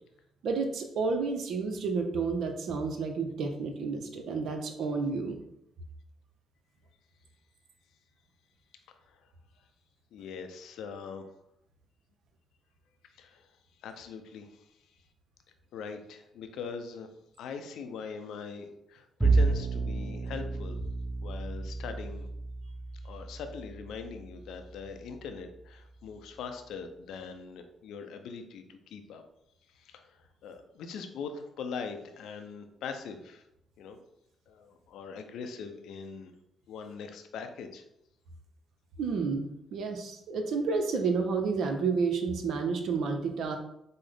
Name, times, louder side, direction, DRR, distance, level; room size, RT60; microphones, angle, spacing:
voice 1, 0.4-5.4 39.0-43.6, right 4 dB, 70° right, 5 dB, 0.5 m, -30 dB
voice 2, 10.1-11.2 13.2-13.5 13.8-14.6 15.7-17.1 17.4-20.8 21.2-22.3 23.0-29.2 29.8-33.4 33.8-34.0 34.5-36.3 36.7-37.8, left 5 dB, 75° left, 7 dB, 0.5 m, -42 dB
Bowed string instrument, 19.2-25.6, right 3 dB, 15° right, 0.9 m, -31 dB
5.4 x 2.0 x 3.4 m, 0.81 s
hypercardioid pair, 50°, 0 cm